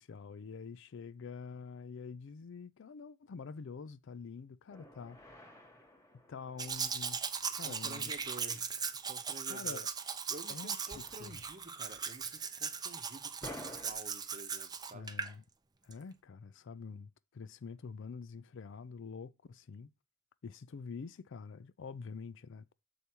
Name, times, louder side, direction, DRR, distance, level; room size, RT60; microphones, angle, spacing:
voice 1, 0.0-5.2 6.3-7.2 7.5-8.1 9.5-9.9 10.5-11.4 14.9-15.4 15.8-19.9 20.4-22.7, left 5 dB, 60° left, 0.4 m, -46 dB
sound 1, 4.7-7.2 10.9-11.6 11.9-12.0 13.4-13.9, left 1 dB, 15° left, 1.2 m, -50 dB
Domestic sounds home sounds, 6.6-15.3 15.9-16.0, right 6 dB, 20° right, 0.6 m, -39 dB
voice 2, 7.6-8.8 9.0-9.8 10.3-15.1, right 2 dB, 35° right, 0.9 m, -50 dB
6.9 x 4.9 x 4.4 m
head